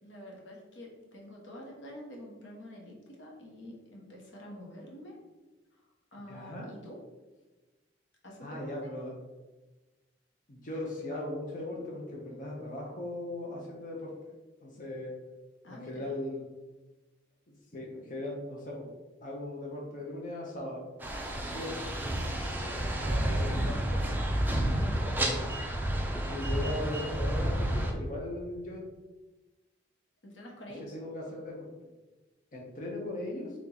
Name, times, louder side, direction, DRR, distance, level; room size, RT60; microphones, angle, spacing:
voice 1, 0.0-5.2 6.1-7.0 8.2-8.7 15.6-16.2 22.5-24.2 24.7-25.2 30.2-31.0, equal, 80° left, -2 dB, 1.0 m, -47 dB
voice 2, 6.3-6.7 8.4-9.1 10.5-14.1 14.6-15.1 15.6-16.4 17.7-18.9 19.2-20.8 21.5-21.9 23.4-23.5 26.3-28.8 30.9-31.7 32.5-33.5, left 1 dB, 45° left, -3 dB, 0.7 m, -38 dB
sound 1, 21.0-27.9, right 1 dB, 10° right, 0.4 m, -30 dB
3.6 x 2.9 x 3.9 m, 1.2 s
head